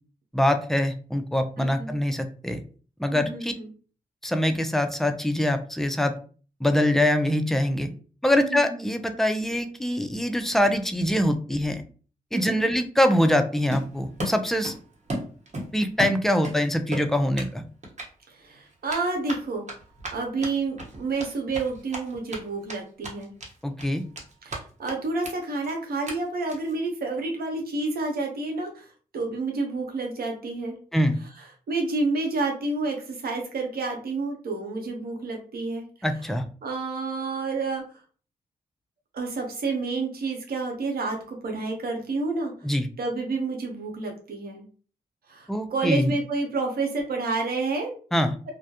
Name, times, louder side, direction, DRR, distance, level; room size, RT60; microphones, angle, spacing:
voice 1, 0.3-2.6 3.0-3.5 4.2-6.1 6.6-7.9 8.2-11.8 12.3-14.7 15.7-17.6 23.6-24.0 30.9-31.2 36.0-36.5 42.6-42.9 45.5-46.1 48.1-48.4, left 1 dB, ahead, 6 dB, 0.5 m, -24 dB
voice 2, 1.6-2.0 3.1-3.7 8.3-8.7 12.3-12.7 18.3-19.7 20.1-23.3 24.4-30.8 31.7-35.8 36.6-37.8 39.1-42.5 43.0-44.6 45.3-47.9, right 3 dB, 75° right, 2 dB, 0.8 m, -29 dB
Run, 13.7-14.8 15.1-16.6 16.9-17.5 17.8-18.1 18.9-22.4 22.7-22.8 23.0-23.5 23.8-24.6 24.9-25.0 25.2-25.3 25.6-25.7 26.1-26.2 26.5-26.7, right 1 dB, 45° right, 1.0 m, -34 dB
2.2 x 2.1 x 2.8 m, 0.40 s
supercardioid pair, 45°, 16 cm